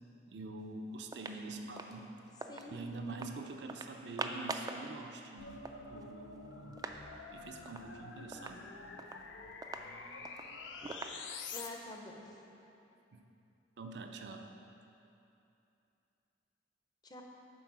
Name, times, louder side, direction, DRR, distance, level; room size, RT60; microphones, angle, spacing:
voice 1, 0.3-2.1 2.7-5.6 5.9-6.8 7.3-8.6 13.1-13.3 13.8-14.5, right 2 dB, 70° right, 4 dB, 0.6 m, -45 dB
sound 1, 0.6-0.7 1.0-2.7 3.1-3.4 3.7-4.9 5.2-5.3 5.5-7.0 7.3-7.4 7.7-7.9 8.3-11.6, right 3 dB, 20° right, 0.3 m, -44 dB
voice 2, 2.5-2.8 8.1-8.5 11.5-12.4 17.0-17.2, left 2 dB, 20° left, 1 dB, 0.7 m, -48 dB
sound 2, 5.4-11.7, left 4 dB, 85° left, 0.6 m, -48 dB
7.8 x 4.7 x 6.1 m, 2.8 s
head